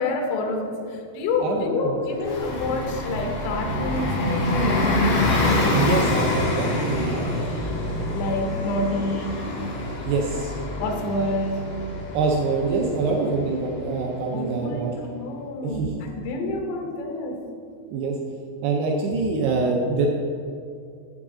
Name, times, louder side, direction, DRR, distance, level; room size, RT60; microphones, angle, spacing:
voice 1, 0.0-5.8 8.1-9.6 10.8-11.8 14.3-17.4, left 2 dB, 80° left, 3 dB, 3.1 m, -28 dB
voice 2, 1.4-2.0 5.7-7.2 10.1-10.6 12.1-14.9 15.6-15.9 17.9-18.2 18.6-20.1, right 4 dB, 80° right, -1 dB, 2.5 m, -25 dB
Bus, 2.2-14.5, left 1 dB, 60° left, 2.7 m, -26 dB
8.4 x 7.9 x 3.7 m, 2.4 s
omnidirectional pair, 5.0 m